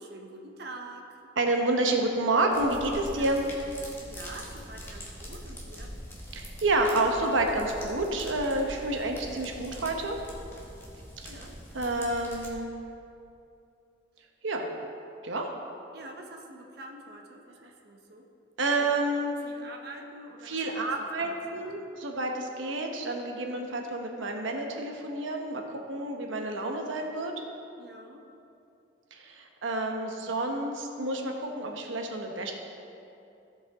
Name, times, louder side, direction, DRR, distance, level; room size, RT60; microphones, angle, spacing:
voice 1, 0.0-1.3 3.1-3.3 4.0-6.0 11.3-11.6 15.9-18.3 18.8-19.0 19.4-21.6 27.8-28.2, right 2 dB, 55° right, 2 dB, 0.9 m, -46 dB
voice 2, 1.4-3.4 6.3-10.2 11.2-11.3 11.7-12.7 14.4-14.7 15.2-15.5 18.6-19.4 20.4-27.3 29.1-32.5, right 2 dB, 90° right, 2 dB, 1.0 m, -29 dB
sound 1, 2.5-12.5, equal, 10° left, 1.2 m, -43 dB
15.5 x 5.3 x 3.6 m, 2.7 s
head